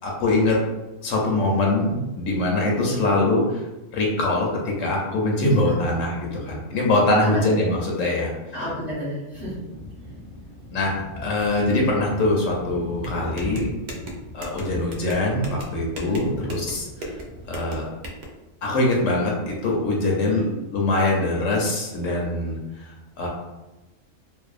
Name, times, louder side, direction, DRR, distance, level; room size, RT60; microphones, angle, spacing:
voice 1, 0.0-0.6 1.0-3.6 3.9-8.3 10.7-13.7 14.3-17.1 17.5-17.8 18.6-20.4 20.7-23.3, left 2 dB, 80° left, -2 dB, 1.0 m, -23 dB
voice 2, 8.5-9.6 13.1-13.3 16.0-16.3 20.3-20.5, left 1 dB, 25° left, -9 dB, 0.6 m, -32 dB
sound 1, 9.3-17.6, left 1 dB, 25° right, 0.6 m, -39 dB
sound 2, 13.0-18.2, right 1 dB, 70° right, 0.4 m, -37 dB
2.6 x 2.1 x 2.4 m, 1.0 s
omnidirectional pair, 1.4 m